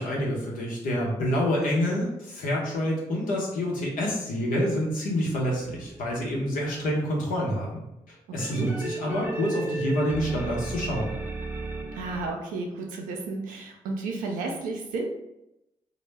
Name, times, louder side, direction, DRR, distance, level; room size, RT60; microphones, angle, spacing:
voice 1, 0.0-11.1, equal, 80° left, -2 dB, 0.7 m, -27 dB
sound 1, 5.3-6.6 8.4-12.3, right 3 dB, 10° right, 0.5 m, -34 dB
voice 2, 8.4-8.7 11.9-15.1, right 3 dB, 90° right, 1 dB, 0.4 m, -32 dB
2.0 x 2.0 x 3.2 m, 0.88 s
supercardioid pair, 45°, 14 cm